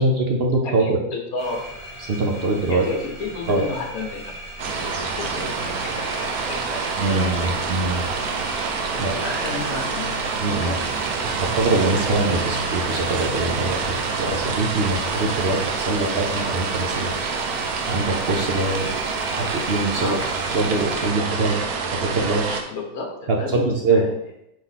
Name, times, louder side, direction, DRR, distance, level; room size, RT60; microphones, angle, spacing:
voice 1, 0.0-1.0 2.1-2.9 3.5-3.6 7.0-8.0 9.0-9.1 10.4-10.8 11.4-17.2 17.9-18.9 19.3-20.1 20.5-21.6 22.0-22.6 23.3-24.0, right 2 dB, 50° right, 1 dB, 0.9 m, -23 dB
voice 2, 0.6-1.6 2.7-4.3 4.7-7.5 7.9-8.2 8.9-10.8 20.0-20.3 22.7-24.1, left 3 dB, 75° left, 1 dB, 1.6 m, -32 dB
sound 1, 1.4-21.1, right 1 dB, 10° right, 1.9 m, -39 dB
sound 2, 4.6-22.6, right 4 dB, 80° right, 1.2 m, -27 dB
4.9 x 3.9 x 5.7 m, 0.85 s
omnidirectional pair, 1.6 m